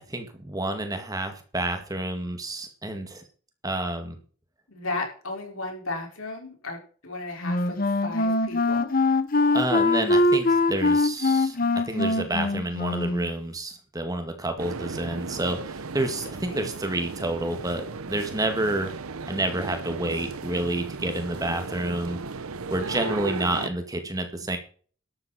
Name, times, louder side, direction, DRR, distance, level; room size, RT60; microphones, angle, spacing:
voice 1, 0.1-3.2 3.6-4.2 9.5-18.9 19.3-22.2 22.7-24.6, right 1 dB, 15° right, 6 dB, 2.1 m, -29 dB
voice 2, 4.7-8.9 16.2-16.7, left 2 dB, 80° left, 1 dB, 5.2 m, -35 dB
Wind instrument woodwind instrument, 7.4-13.3, left 2 dB, 45° left, 0.9 m, -23 dB
sound 1, 14.6-23.7, right 4 dB, 90° right, 0.9 m, -36 dB
12.5 x 11.5 x 4.4 m, 0.42 s
head